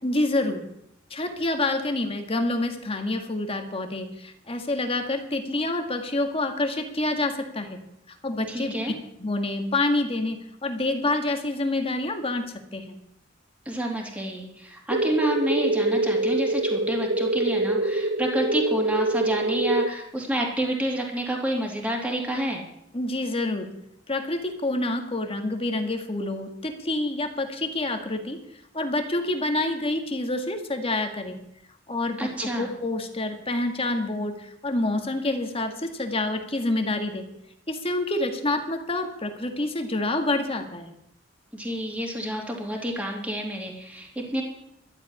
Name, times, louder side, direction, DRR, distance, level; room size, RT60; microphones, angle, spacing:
voice 1, 0.0-0.6 1.1-7.8 8.1-8.8 9.2-12.4 12.7-13.0 22.9-23.7 24.1-28.4 28.7-31.4 31.9-37.3 37.7-40.9, left 2 dB, 30° left, 5 dB, 1.9 m, -27 dB
voice 2, 8.5-8.9 13.6-22.6 32.2-32.7 41.5-44.4, right 1 dB, 5° right, -1 dB, 2.9 m, -29 dB
sound 1, 14.9-19.9, right 2 dB, 50° right, 0.6 m, -25 dB
12.5 x 8.0 x 9.6 m, 0.78 s
head